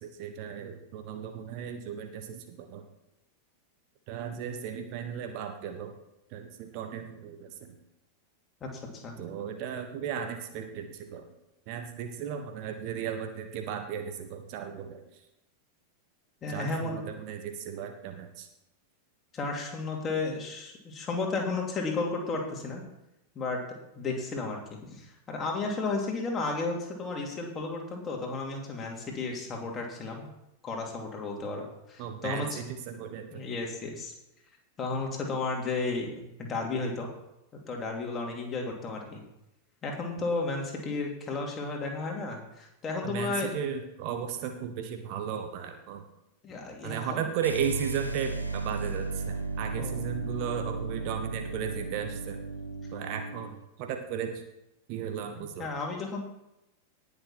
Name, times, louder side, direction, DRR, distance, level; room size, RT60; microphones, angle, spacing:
voice 1, 0.0-2.8 4.1-5.9 6.3-7.7 9.2-11.2 11.7-15.2 16.5-18.5 32.0-33.4 43.0-46.0 46.8-52.4 52.9-54.3 54.9-55.7, right 8 dB, 45° right, 6 dB, 1.3 m, -35 dB
voice 2, 16.4-17.0 19.3-22.8 23.3-23.6 24.0-30.3 30.6-32.6 33.3-34.1 34.8-36.1 36.4-37.1 37.7-39.2 39.8-43.5 46.4-47.2 49.7-50.0 55.6-56.2, left 3 dB, 25° left, 0 dB, 3.1 m, -33 dB
sound 1, 47.4-53.6, right 3 dB, 90° right, 1.1 m, -35 dB
18.5 x 6.8 x 4.4 m, 0.88 s
figure-of-eight pair, 90°, 0 cm